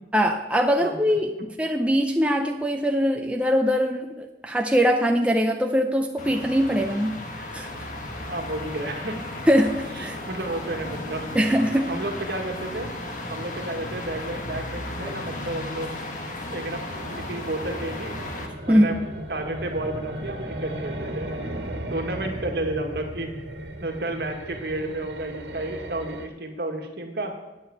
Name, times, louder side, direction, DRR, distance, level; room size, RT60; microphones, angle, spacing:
voice 1, 0.1-7.3 7.5-7.7 9.5-10.2 11.3-11.9 18.7-18.9, equal, 5° right, 3 dB, 0.6 m, -22 dB
sound 1, 6.2-18.5, left 1 dB, 45° left, 1.5 m, -35 dB
voice 2, 8.3-9.2 10.0-11.3 11.9-12.9 13.3-15.9 16.5-16.9 17.2-18.2 18.7-18.9 19.3-21.3 21.9-23.3 23.8-27.3, right 2 dB, 60° right, 3 dB, 1.8 m, -31 dB
sound 2, 16.9-26.3, right 1 dB, 75° right, 1.6 m, -36 dB
9.2 x 7.9 x 8.2 m, 1.1 s
head